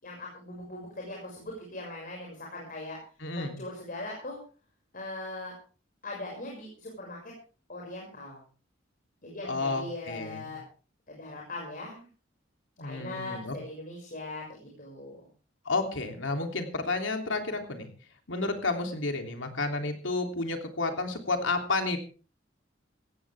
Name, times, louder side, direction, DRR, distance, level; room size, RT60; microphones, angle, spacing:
voice 1, 0.0-3.0 3.3-4.4 4.9-5.5 6.0-7.3 7.7-8.4 9.2-10.6 11.1-12.0 12.8-15.3, left 2 dB, 50° left, -2 dB, 6.2 m, -40 dB
voice 2, 3.2-3.6 9.4-10.5 12.8-13.5 15.6-17.9 18.3-22.0, left 3 dB, 75° left, 5 dB, 3.2 m, -31 dB
17.5 x 16.0 x 3.5 m, 0.37 s
head